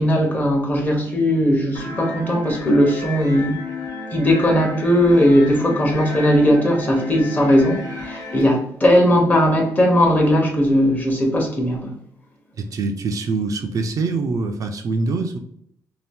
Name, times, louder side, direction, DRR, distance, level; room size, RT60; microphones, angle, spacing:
voice 1, 0.0-3.6 4.1-11.9, equal, 25° left, 0.9 m, -18 dB
sound 1, 1.7-8.4, left 2 dB, 60° left, 1.1 m, -32 dB
voice 2, 12.7-15.4, right 3 dB, 55° right, 0.4 m, -24 dB
2.7 x 2.3 x 3.5 m
cardioid pair, 95°, 7 cm